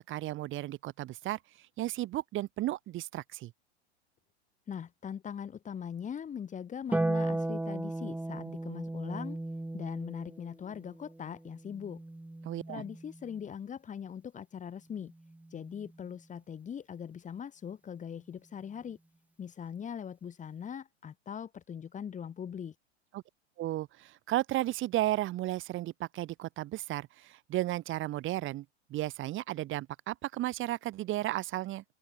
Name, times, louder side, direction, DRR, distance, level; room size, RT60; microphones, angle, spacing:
voice 1, 0.0-1.4 1.8-3.5 12.4-12.8 23.1-23.2 23.6-28.6 28.9-31.8, right 15 dB, 35° right, 4.7 m, -34 dB
voice 2, 4.7-9.4 9.7-12.0 12.7-15.1 15.5-19.0 19.4-22.7, left 8 dB, 20° left, 4.1 m, -41 dB
Harp, 6.9-13.4 15.1-16.0, right 2 dB, 5° right, 1.8 m, -36 dB
open air
figure-of-eight pair, 100°, 35 cm